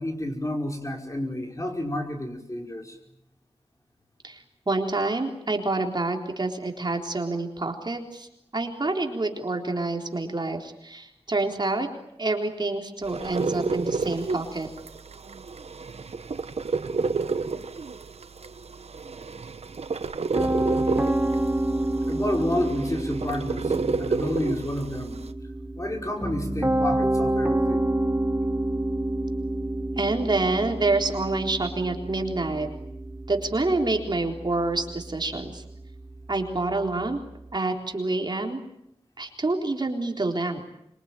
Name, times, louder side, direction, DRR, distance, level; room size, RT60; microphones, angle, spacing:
voice 1, 0.0-3.0 22.1-25.2 25.8-27.9, left 1 dB, 30° left, 2 dB, 5.2 m, -30 dB
voice 2, 4.2-8.3 8.5-11.9 12.2-14.7 30.0-32.7 33.3-35.6 36.3-37.2 37.5-38.6 39.2-40.6, right 2 dB, 45° right, 2 dB, 3.9 m, -27 dB
sound 1, 13.0-25.3, right 4 dB, 80° right, 1.2 m, -31 dB
Piano, 20.3-37.5, right 1 dB, 15° right, 1.1 m, -29 dB
26.5 x 24.0 x 9.1 m, 0.80 s
wide cardioid pair, 85°, 11 cm